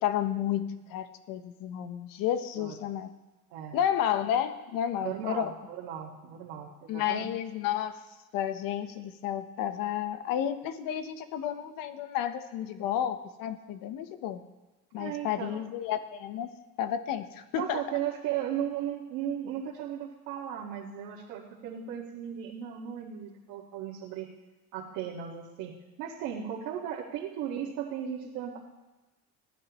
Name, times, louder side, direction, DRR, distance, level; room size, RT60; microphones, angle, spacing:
voice 1, 0.0-3.1 3.7-5.5 6.9-8.0 8.3-14.4 14.9-16.5 16.8-17.8, left 10 dB, 70° left, 10 dB, 1.2 m, -31 dB
voice 2, 5.0-7.3 14.9-15.7 17.6-24.3 24.7-28.6, right 9 dB, 85° right, -5 dB, 2.0 m, -36 dB
20.5 x 12.5 x 3.1 m, 1.2 s
supercardioid pair, 105°, 35 cm